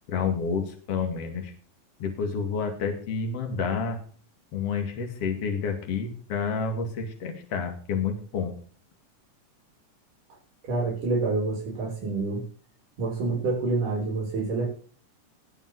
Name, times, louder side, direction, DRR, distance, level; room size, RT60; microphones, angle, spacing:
voice 1, 0.1-1.5 2.0-4.0 4.5-8.6, left 5 dB, 50° left, 4 dB, 3.0 m, -29 dB
voice 2, 10.6-12.4 13.0-14.7, right 3 dB, 85° right, -2 dB, 5.2 m, -27 dB
19.5 x 7.3 x 4.8 m, 0.42 s
omnidirectional pair, 3.6 m